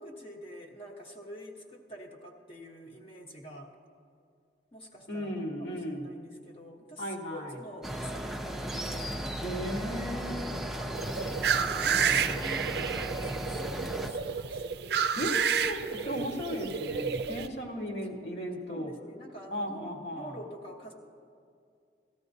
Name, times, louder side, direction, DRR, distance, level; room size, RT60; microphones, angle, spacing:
voice 1, 0.0-3.7 4.7-9.3 10.6-14.8 18.2-18.4 18.7-20.9, equal, 30° left, -1 dB, 0.9 m, -47 dB
voice 2, 5.1-6.1 7.0-7.5 9.4-10.6 15.1-18.9 19.5-20.4, equal, 60° left, -2 dB, 1.3 m, -35 dB
sound 1, 7.8-14.1, equal, ahead, 0.5 m, -36 dB
sound 2, 10.9-17.5, right 7 dB, 60° right, 0.4 m, -30 dB
18.0 x 13.5 x 2.7 m, 2.4 s
head